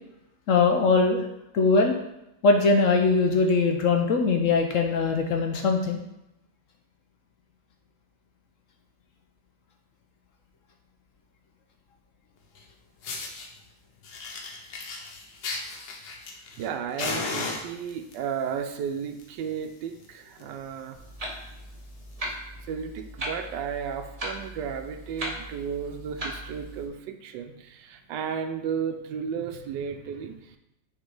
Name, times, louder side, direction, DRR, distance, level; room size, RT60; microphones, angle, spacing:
voice 1, 0.5-1.2 1.5-2.0 2.4-6.0, left 4 dB, 65° left, 3 dB, 0.8 m, -21 dB
Fire, 12.5-12.6 13.0-13.5 14.0-16.7 17.0-18.1 19.0-19.2 19.5-19.6 20.0-20.1 20.4-20.6 21.2-21.3 22.2-22.3, left 3 dB, 85° left, 1.7 m, -34 dB
voice 2, 16.6-21.0 22.6-30.6, right 7 dB, 80° right, 7 dB, 1.3 m, -34 dB
Clock, 20.9-26.9, right 1 dB, 25° right, 0.9 m, -38 dB
6.6 x 3.7 x 4.8 m, 0.87 s
omnidirectional pair, 1.9 m